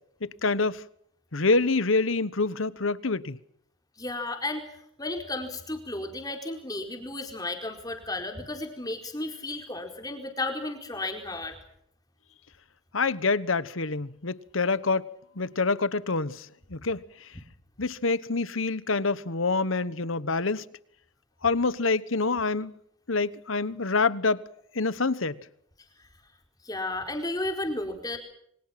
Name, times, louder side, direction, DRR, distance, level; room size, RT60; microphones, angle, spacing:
voice 1, 0.2-0.8 1.3-3.4 12.9-15.0 15.3-17.3 17.8-20.7 21.4-22.7 23.1-24.4 24.7-25.4, left 3 dB, 80° left, 1.2 m, -26 dB
voice 2, 4.0-4.7 5.0-11.6 26.0-26.1 26.6-28.2, left 2 dB, 20° left, 4.6 m, -33 dB
28.0 x 24.5 x 5.9 m
head